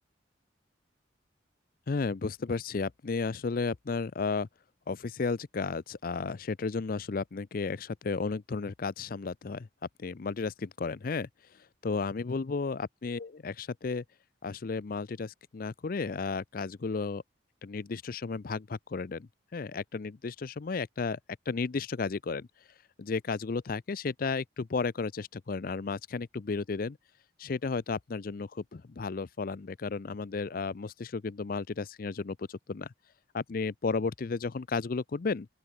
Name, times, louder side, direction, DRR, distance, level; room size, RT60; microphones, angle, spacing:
voice 1, 1.9-4.5 4.9-9.7 10.0-11.3 11.8-14.0 14.4-17.2 17.6-21.2 21.5-22.5 23.0-27.0 27.4-32.9 33.3-35.5, left 4 dB, 50° left, 0.5 m, -33 dB
open air
head